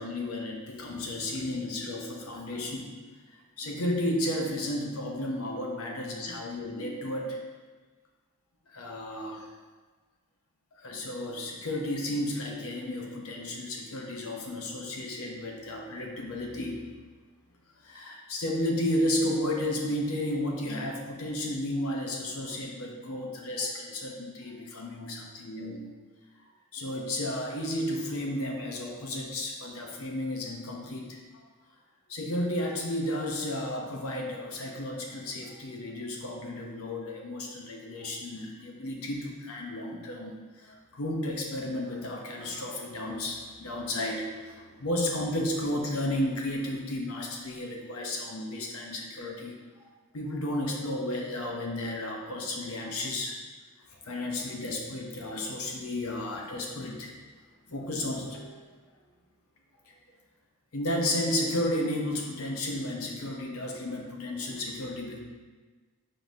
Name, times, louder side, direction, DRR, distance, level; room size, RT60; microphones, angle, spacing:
voice 1, 0.0-2.9 3.6-7.4 8.7-9.5 10.8-16.8 17.8-26.0 26.7-31.2 32.1-40.3 40.6-49.8 50.1-53.4 54.0-57.1 57.7-58.6 60.7-65.2, left 1 dB, 75° left, 0 dB, 0.7 m, -33 dB
5.2 x 3.7 x 2.7 m, 1.4 s
head